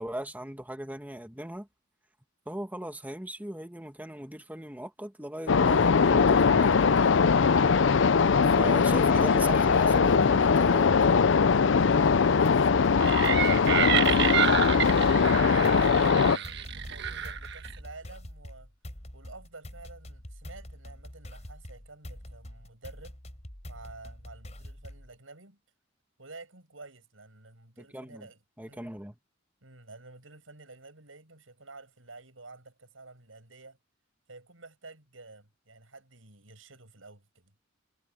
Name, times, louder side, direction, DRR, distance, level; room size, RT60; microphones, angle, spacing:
voice 1, 0.0-1.7 2.5-7.2 8.4-11.0 27.9-28.3 28.6-29.2, right 1 dB, 10° right, 1.8 m, -38 dB
sound 1, 5.5-16.4, left 5 dB, 65° left, 0.5 m, -21 dB
voice 2, 11.6-13.4 14.0-18.7 19.1-23.2 23.7-25.6 26.2-28.4 28.7-29.0 29.6-33.8 34.3-37.5, right 3 dB, 90° right, 6.9 m, -50 dB
sound 2, 12.4-25.1, equal, 35° left, 3.8 m, -45 dB
sound 3, 13.0-17.8, right 8 dB, 60° right, 1.5 m, -29 dB
head